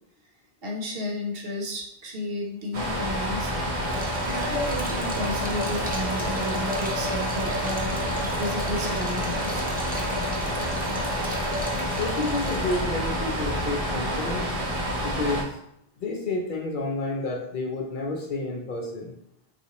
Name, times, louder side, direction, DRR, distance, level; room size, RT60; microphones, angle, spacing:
voice 1, 0.6-3.9 4.2-9.6, equal, 70° right, -1 dB, 1.0 m, -33 dB
sound 1, 2.7-15.4, equal, 40° right, 0.7 m, -28 dB
sound 2, 3.9-12.8, left 1 dB, 15° right, 0.3 m, -35 dB
voice 2, 12.0-14.5 15.0-15.5 16.0-19.1, left 2 dB, 60° left, 0 dB, 0.7 m, -30 dB
3.8 x 2.4 x 2.9 m, 0.74 s
omnidirectional pair, 1.0 m